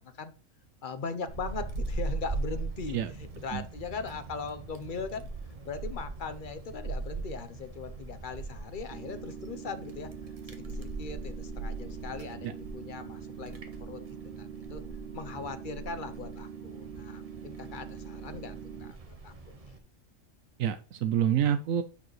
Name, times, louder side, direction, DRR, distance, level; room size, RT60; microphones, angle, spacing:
voice 1, 0.0-0.3 0.8-5.3 5.6-10.1 10.5-14.8 15.1-19.5, left 5 dB, 45° left, 0.8 m, -40 dB
Wind, 1.3-19.8, right 3 dB, 30° right, 1.0 m, -40 dB
sound 1, 8.9-18.9, right 8 dB, 60° right, 0.8 m, -44 dB
voice 2, 20.6-21.8, right 9 dB, 90° right, 1.0 m, -27 dB
10.0 x 4.8 x 3.1 m
omnidirectional pair, 1.3 m